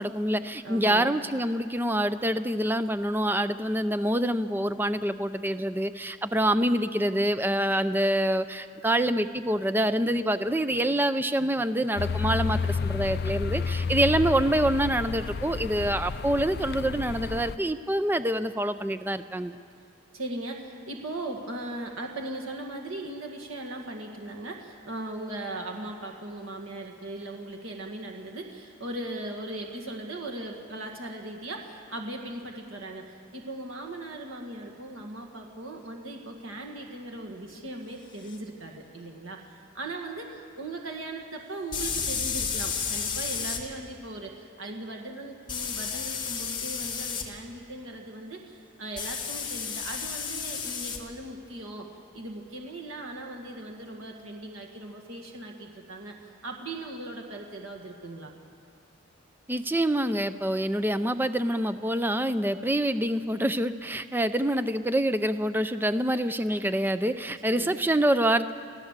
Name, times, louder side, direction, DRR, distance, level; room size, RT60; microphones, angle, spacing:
voice 1, 0.0-19.6 59.5-68.5, right 1 dB, 10° right, 11 dB, 0.5 m, -26 dB
voice 2, 0.6-1.2 20.1-58.3 67.5-67.8, right 2 dB, 85° right, 2 dB, 1.9 m, -38 dB
sound 1, 12.0-17.6, left 5 dB, 50° left, 0.4 m, -31 dB
sound 2, 38.3-38.4 41.7-43.6 45.5-47.3 49.0-51.0, left 6 dB, 25° left, 1.7 m, -32 dB
26.0 x 15.5 x 7.4 m, 2.3 s
head